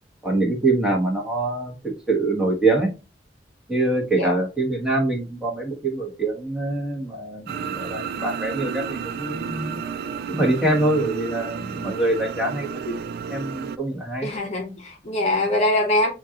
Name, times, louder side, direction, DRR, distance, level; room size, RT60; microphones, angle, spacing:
voice 1, 0.2-1.7 2.1-2.9 3.7-9.7 10.3-14.3, right 2 dB, 5° right, -2 dB, 1.3 m, -24 dB
sound 1, 7.5-13.8, right 6 dB, 60° right, 0.3 m, -32 dB
voice 2, 14.2-16.1, left 1 dB, 40° left, 2 dB, 1.0 m, -23 dB
7.2 x 2.5 x 2.9 m, 0.30 s
head